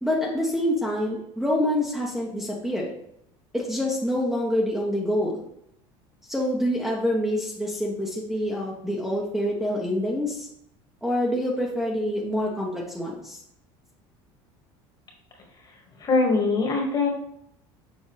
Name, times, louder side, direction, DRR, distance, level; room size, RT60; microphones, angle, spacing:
voice 1, 0.0-2.9 3.5-5.4 6.3-10.5 11.0-13.4, left 1 dB, 5° right, -3 dB, 1.0 m, -26 dB
voice 2, 16.0-17.1, left 3 dB, 35° left, 1 dB, 1.8 m, -22 dB
6.7 x 4.5 x 3.2 m, 0.75 s
supercardioid pair, 125°, 12 cm